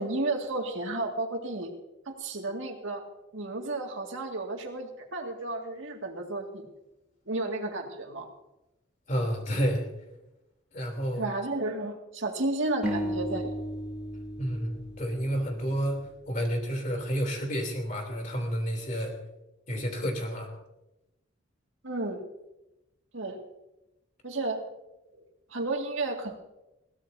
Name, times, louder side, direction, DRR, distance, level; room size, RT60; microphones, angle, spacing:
voice 1, 0.0-1.7 2.1-3.0 3.3-6.7 7.3-8.3 11.2-13.5 21.8-22.2 23.1-23.4 24.2-24.6 25.5-26.3, right 2 dB, 75° right, 2 dB, 2.2 m, -32 dB
voice 2, 9.1-9.9 10.7-11.3 14.4-19.1 19.7-20.5, equal, 40° left, 3 dB, 3.3 m, -30 dB
sound 1, 12.8-16.1, equal, 5° right, 2.8 m, -35 dB
21.5 x 16.5 x 2.8 m, 0.94 s
head